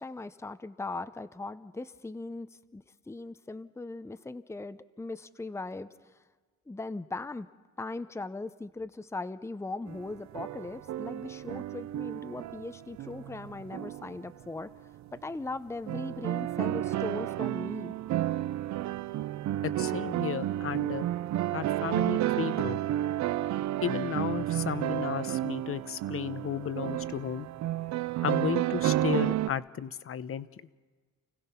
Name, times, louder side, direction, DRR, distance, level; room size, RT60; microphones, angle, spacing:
voice 1, 0.0-6.2 6.7-7.5 7.8-14.7 15.2-17.9, left 3 dB, 10° left, 11 dB, 0.8 m, -39 dB
sound 1, 9.9-14.4 15.0-15.1 15.9-29.5, right 13 dB, 65° right, 0.5 m, -31 dB
voice 2, 19.6-21.1 21.5-22.8 23.8-27.5 28.2-30.5, left 9 dB, 45° left, 15 dB, 0.9 m, -33 dB
29.5 x 16.0 x 5.8 m, 1.4 s
cardioid pair, 90°, 30 cm